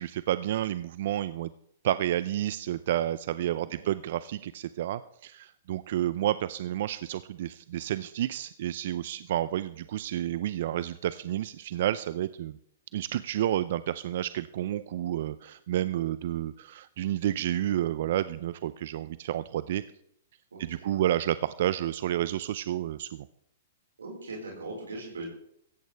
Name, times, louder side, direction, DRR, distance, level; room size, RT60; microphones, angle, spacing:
voice 1, 0.0-1.5 1.8-12.6 12.9-19.8 20.7-23.3, right 12 dB, 60° right, 15 dB, 0.5 m, -30 dB
voice 2, 3.5-3.9 20.5-20.9 24.0-25.2, right 2 dB, 90° right, -1 dB, 4.8 m, -40 dB
16.5 x 14.5 x 3.4 m, 0.72 s
hypercardioid pair, 125°, 0 cm